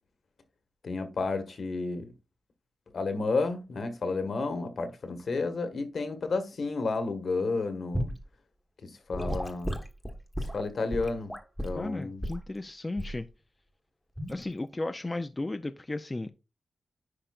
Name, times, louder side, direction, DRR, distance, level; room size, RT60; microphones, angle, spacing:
voice 1, 0.8-2.1 2.9-8.1 8.8-9.8 10.5-11.3 11.6-12.2, left 3 dB, 60° left, 1.4 m, -31 dB
Gurgling / Sink (filling or washing) / Liquid, 7.9-8.2 9.1-11.8 12.2-12.5 13.0-13.2 14.2-14.4, equal, ahead, 1.2 m, -34 dB
voice 2, 11.7-13.3 14.3-16.3, left 2 dB, 20° left, 0.4 m, -34 dB
10.0 x 5.0 x 2.4 m
wide cardioid pair, 120°, 0 cm